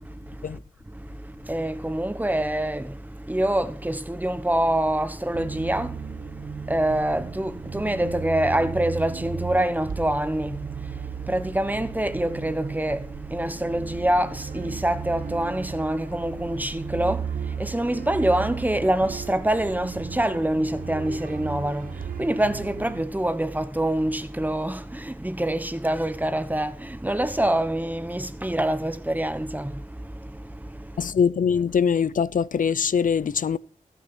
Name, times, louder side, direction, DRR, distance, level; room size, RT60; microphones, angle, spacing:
voice 1, 0.0-0.6 0.8-31.1, right 1 dB, 10° right, 1.1 m, -26 dB
sound 1, 5.3-23.0, right 7 dB, 90° right, 0.7 m, -36 dB
voice 2, 31.0-33.6, left 7 dB, 70° left, 0.5 m, -22 dB
14.0 x 6.5 x 6.0 m
wide cardioid pair, 95°, 14 cm